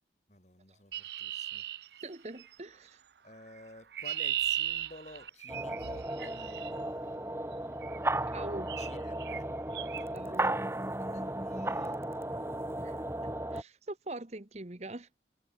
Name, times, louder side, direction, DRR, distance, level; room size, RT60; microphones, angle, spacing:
voice 1, 0.3-2.0 3.2-7.0 8.8-9.5 9.9-12.1, left 2 dB, 40° left, 5.0 m, -52 dB
Chirp tweet, 0.9-2.5 3.6-6.7 7.8-8.1 8.7-8.9 9.2-9.4 9.7-10.0, right 12 dB, 65° right, 0.5 m, -36 dB
voice 2, 2.0-3.0 8.3-8.7 10.1-10.5 12.8-13.0 13.5-15.1, right 2 dB, 40° right, 1.2 m, -42 dB
sound 1, 5.5-13.6, right 1 dB, 15° right, 1.5 m, -35 dB
head